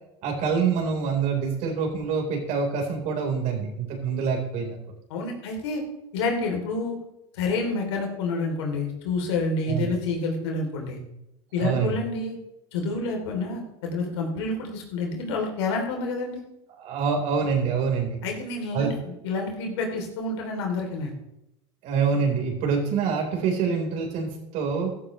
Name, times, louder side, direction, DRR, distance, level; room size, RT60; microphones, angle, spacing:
voice 1, 0.2-4.8 9.7-9.9 11.6-12.0 16.8-18.2 18.7-18.9 21.8-24.9, right 5 dB, 60° right, 1 dB, 4.2 m, -26 dB
voice 2, 5.1-5.8 6.1-7.0 7.3-11.0 11.5-12.4 12.7-16.4 18.2-21.1, left 3 dB, 75° left, 2 dB, 3.2 m, -28 dB
14.5 x 13.5 x 3.2 m, 0.88 s
hypercardioid pair, 80°, 14 cm